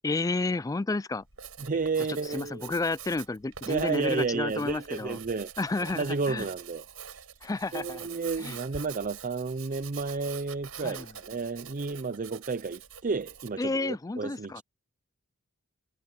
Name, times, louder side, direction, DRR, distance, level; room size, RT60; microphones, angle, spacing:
voice 1, 0.0-1.2 2.2-5.2 5.6-6.5 7.4-8.1 8.4-8.6 10.8-11.0 13.6-14.6, left 3 dB, 15° left, 0.4 m, -31 dB
Writing, 1.2-13.6, right 8 dB, 75° right, 5.0 m, -45 dB
voice 2, 1.6-2.7 3.7-5.5 6.0-7.2 7.7-14.6, right 4 dB, 40° right, 0.5 m, -32 dB
head